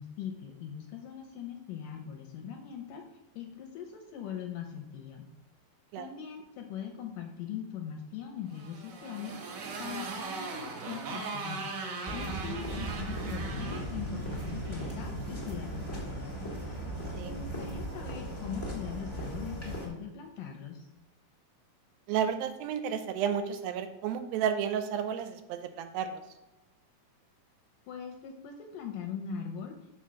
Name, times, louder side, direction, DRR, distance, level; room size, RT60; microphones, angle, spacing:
voice 1, 0.0-3.0 3.4-5.3 6.0-11.7 12.1-16.3 17.2-20.9 27.9-29.8, left 8 dB, 80° left, 3 dB, 2.0 m, -41 dB
Motorcycle, 8.5-14.9, right 4 dB, 65° right, 2.1 m, -40 dB
sound 1, 12.1-19.9, right 1 dB, 15° left, 0.9 m, -37 dB
voice 2, 22.1-26.2, right 8 dB, 80° right, 9 dB, 2.3 m, -32 dB
5.6 x 4.5 x 6.2 m, 1.0 s
omnidirectional pair, 4.3 m